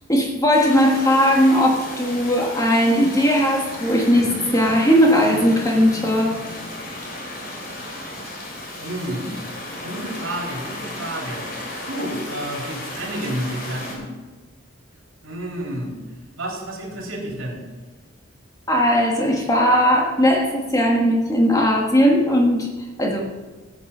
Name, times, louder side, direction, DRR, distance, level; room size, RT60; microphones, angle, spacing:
voice 1, 0.1-6.3 18.7-22.7 23.0-23.2, equal, 15° left, 0 dB, 1.6 m, -18 dB
sound 1, 0.5-13.9, left 1 dB, 45° left, 3.2 m, -34 dB
voice 2, 8.8-9.4 9.8-11.4 11.9-14.0 15.2-15.9 16.4-17.6, right 1 dB, 85° right, -2 dB, 3.8 m, -30 dB
13.5 x 8.5 x 5.6 m, 1.3 s
head